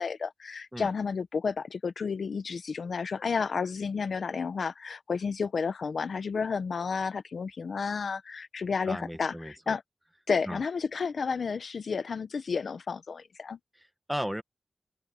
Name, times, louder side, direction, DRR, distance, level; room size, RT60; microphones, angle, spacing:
voice 1, 0.0-9.8 10.3-13.6, left 5 dB, 90° left, 1.0 m, -31 dB
voice 2, 8.8-9.8 10.4-10.6 13.7-14.4, equal, 5° right, 1.4 m, -36 dB
open air
wide cardioid pair, 120°, 0 cm